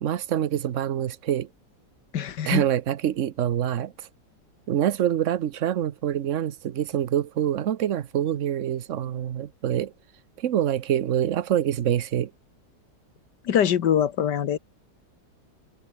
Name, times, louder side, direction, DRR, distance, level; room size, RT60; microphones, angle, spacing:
voice 1, 0.0-1.5 2.4-4.1 4.7-9.9 10.4-12.3, right 10 dB, 55° right, 1.1 m, -25 dB
voice 2, 2.1-2.6 13.5-14.6, left 9 dB, 75° left, 1.8 m, -23 dB
omnidirectional pair, 1.8 m